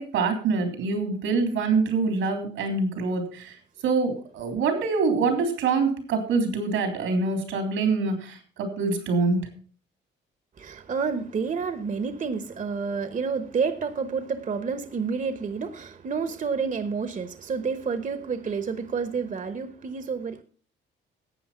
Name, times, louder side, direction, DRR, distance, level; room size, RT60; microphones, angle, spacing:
voice 1, 0.0-3.6 3.8-9.5, right 4 dB, 90° right, 3.5 m, -25 dB
voice 2, 10.6-20.4, right 5 dB, 40° right, 1.0 m, -29 dB
12.0 x 8.2 x 5.6 m
cardioid pair, 90°, 20 cm